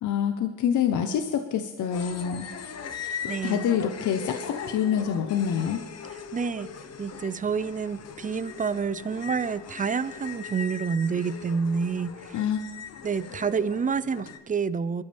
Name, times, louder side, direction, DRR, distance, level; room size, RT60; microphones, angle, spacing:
voice 1, 0.0-2.5 3.2-5.8 12.3-12.6, left 8 dB, 75° left, 7 dB, 1.0 m, -26 dB
sound 1, 1.9-14.4, left 7 dB, 55° left, 1.1 m, -39 dB
voice 2, 3.3-3.7 6.3-6.7 7.0-12.4 13.0-15.0, right 5 dB, 25° right, 16 dB, 0.6 m, -28 dB
22.0 x 12.5 x 3.5 m, 1.2 s
cardioid pair, 90°, 30 cm